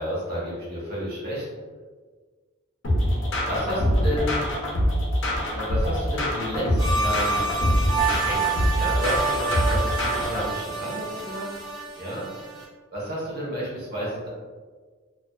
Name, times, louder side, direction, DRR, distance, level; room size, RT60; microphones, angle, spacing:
voice 1, 0.0-1.5 3.5-4.5 5.5-7.5 8.0-12.2 12.5-12.6 12.9-14.3, equal, 50° right, -7 dB, 0.9 m, -31 dB
sound 1, 2.8-10.5, equal, 60° left, 0.6 m, -24 dB
sound 2, 6.8-12.6, right 4 dB, 20° right, 0.4 m, -28 dB
2.4 x 2.3 x 2.2 m, 1.4 s
head